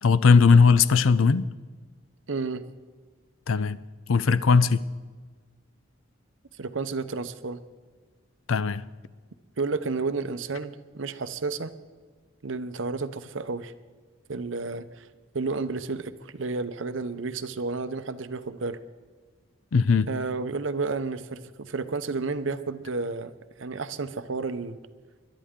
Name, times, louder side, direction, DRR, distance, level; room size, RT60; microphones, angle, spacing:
voice 1, 0.0-1.5 3.5-3.8 4.1-4.8 8.5-8.8 19.7-20.1, left 5 dB, 80° left, 0.5 m, -19 dB
voice 2, 2.3-2.6 6.6-7.6 9.6-11.7 12.4-13.7 14.3-15.1 15.3-18.8 20.1-23.3 23.6-24.8, right 4 dB, 70° right, 0.7 m, -31 dB
21.5 x 12.0 x 3.7 m
head